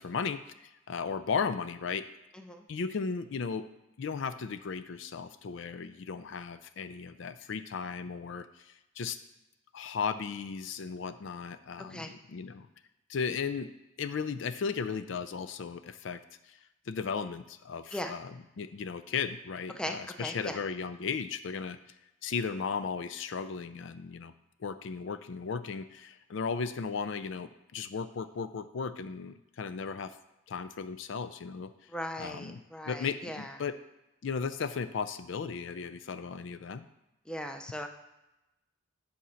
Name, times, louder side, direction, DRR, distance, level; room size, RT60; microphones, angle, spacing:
voice 1, 0.0-2.0 2.7-3.6 4.0-9.2 9.7-12.7 13.1-13.7 14.0-16.2 16.5-16.6 16.9-18.3 18.6-21.8 22.2-24.3 24.6-30.1 30.5-31.7 32.2-33.7 34.2-36.8, left 5 dB, 60° left, 11 dB, 0.4 m, -36 dB
voice 2, 2.3-2.6 11.8-12.1 17.9-18.1 19.8-20.6 31.9-33.6 37.3-37.9, left 1 dB, 5° left, 5 dB, 0.5 m, -38 dB
8.3 x 4.3 x 6.3 m, 0.95 s
head